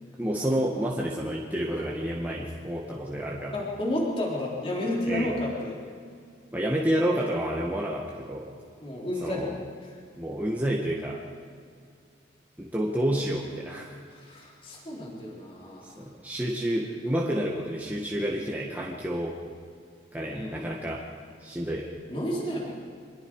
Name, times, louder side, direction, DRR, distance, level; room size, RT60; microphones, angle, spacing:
voice 1, 0.2-3.5 5.1-5.3 6.5-8.5 9.2-9.6 10.2-11.2 12.6-14.0 16.0-19.4 20.1-21.1 21.4-22.0, right 1 dB, 10° right, -3 dB, 1.6 m, -29 dB
voice 2, 3.5-5.8 8.8-9.5 9.8-9.9 14.1-15.9 20.3-20.7 22.1-22.7, left 1 dB, 30° left, -3 dB, 4.1 m, -31 dB
25.5 x 21.0 x 4.9 m, 2.2 s
head